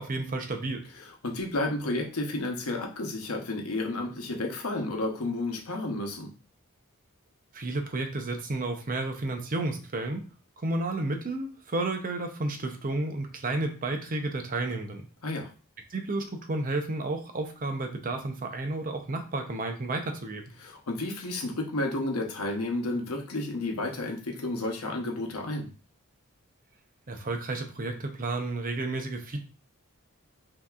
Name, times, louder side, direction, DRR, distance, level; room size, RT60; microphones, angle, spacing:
voice 1, 0.0-0.8 7.5-10.3 10.6-15.1 15.9-20.4 27.1-29.4, right 2 dB, 40° right, 5 dB, 0.7 m, -31 dB
voice 2, 1.0-6.3 15.2-15.5 20.6-25.7, left 2 dB, 85° left, 2 dB, 0.9 m, -31 dB
5.7 x 2.8 x 2.4 m, 0.36 s
head